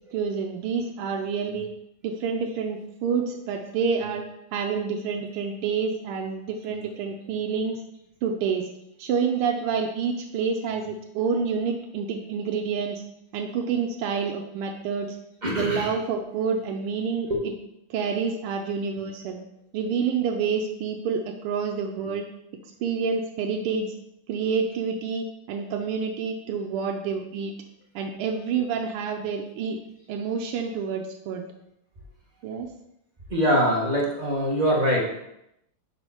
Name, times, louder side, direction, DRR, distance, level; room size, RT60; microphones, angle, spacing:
voice 1, 0.1-1.7 2.0-4.2 4.5-7.8 8.2-8.7 9.0-13.0 13.3-15.2 15.5-17.5 17.9-19.4 19.7-22.2 22.8-23.9 24.3-27.5 27.9-29.8 30.1-31.5 32.4-32.7, right 6 dB, 85° right, 2 dB, 1.5 m, -28 dB
voice 2, 15.4-15.9 33.3-35.0, equal, 25° right, -4 dB, 1.0 m, -23 dB
5.0 x 4.5 x 5.5 m, 0.82 s
omnidirectional pair, 2.4 m